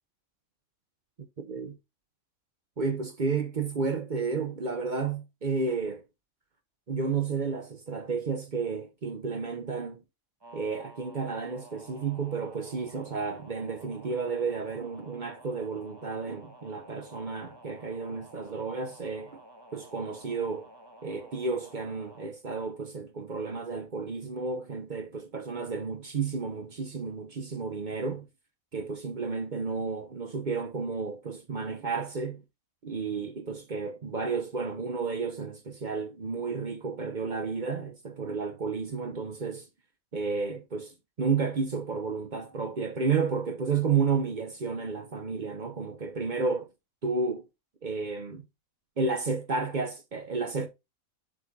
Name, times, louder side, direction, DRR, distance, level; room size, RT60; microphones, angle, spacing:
voice 1, 1.4-1.8 2.8-6.0 6.9-10.0 10.5-19.4 19.7-20.7 21.0-28.3 28.7-32.4 32.8-39.7 40.1-46.7 47.0-47.4 47.8-48.4 49.0-50.7, right 4 dB, 40° right, 0.8 m, -32 dB
sound 1, 10.4-22.3, right 1 dB, 20° right, 1.0 m, -52 dB
7.6 x 5.2 x 2.7 m
omnidirectional pair, 1.5 m